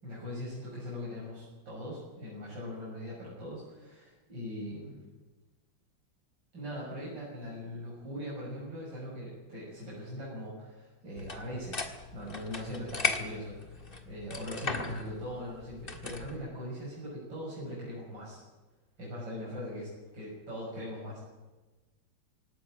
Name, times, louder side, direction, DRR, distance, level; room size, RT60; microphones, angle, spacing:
voice 1, 0.0-5.1 6.5-18.4 19.0-21.3, equal, 65° right, -6 dB, 7.3 m, -41 dB
sound 1, 11.2-16.4, left 4 dB, 30° left, 1.8 m, -37 dB
18.5 x 17.5 x 9.2 m, 1.2 s
omnidirectional pair, 2.1 m